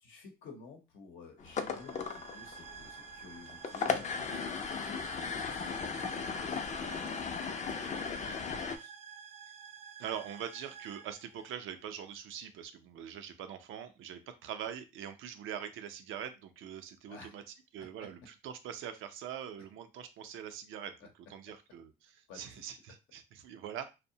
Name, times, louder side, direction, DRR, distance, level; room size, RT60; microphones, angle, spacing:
voice 1, 0.0-7.1 7.4-8.9 17.1-17.4 17.8-18.1 21.0-21.1 22.3-22.8, left 4 dB, 90° left, 2 dB, 0.8 m, -53 dB
sound 1, 1.4-8.8, left 5 dB, 40° left, 0.4 m, -37 dB
sound 2, 1.6-12.1, right 8 dB, 30° right, 0.4 m, -51 dB
voice 2, 10.0-17.4 17.7-20.9 21.3-23.9, right 9 dB, 85° right, 9 dB, 0.4 m, -43 dB
2.6 x 2.1 x 2.7 m, 0.27 s
cardioid pair, 90°, 20 cm